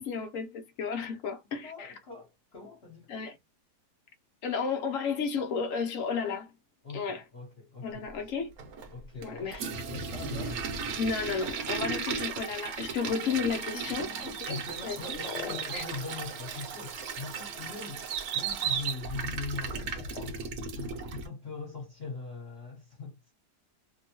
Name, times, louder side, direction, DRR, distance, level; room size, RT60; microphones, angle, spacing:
voice 1, 0.0-1.9 3.1-3.4 4.4-6.5 6.9-7.2 7.8-8.5 9.2-9.6 11.0-14.1 14.5-14.6 14.8-15.2 15.7-15.8, left 5 dB, 65° left, 0.8 m, -32 dB
voice 2, 1.6-3.2 6.8-8.3 8.9-10.8 13.7-18.1 18.3-20.4 20.7-23.3, left 4 dB, 40° left, 1.2 m, -42 dB
Toilet flush, 8.6-21.3, right 5 dB, 65° right, 1.1 m, -37 dB
sound 1, 13.9-17.6 19.7-20.3, left 9 dB, 85° left, 1.2 m, -43 dB
sound 2, 14.2-15.9 16.6-16.7 17.2-20.0 20.4-20.5, right 9 dB, 90° right, 1.2 m, -36 dB
2.9 x 2.1 x 2.8 m
omnidirectional pair, 1.8 m